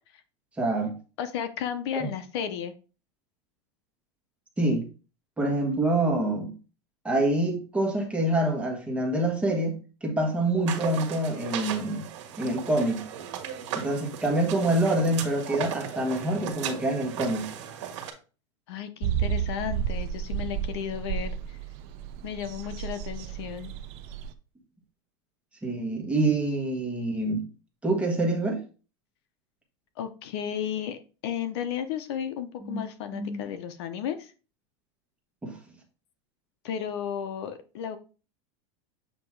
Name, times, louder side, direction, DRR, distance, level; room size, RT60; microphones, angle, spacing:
voice 1, 0.6-0.9 2.0-2.1 4.6-4.8 5.4-6.5 7.0-12.1 12.4-13.0 13.7-17.5 25.6-27.5 27.8-28.6 32.6-32.8 33.1-33.4 35.4-35.6, right 1 dB, 10° right, 1.3 m, -26 dB
voice 2, 1.2-2.7 18.7-21.6 22.2-23.7 30.0-34.3 36.6-38.0, left 9 dB, 65° left, 0.8 m, -33 dB
sound 1, 10.7-18.1, right 9 dB, 85° right, 1.6 m, -37 dB
sound 2, 19.0-24.3, right 9 dB, 45° right, 0.6 m, -32 dB
7.6 x 2.9 x 4.6 m
supercardioid pair, 155°, 15 cm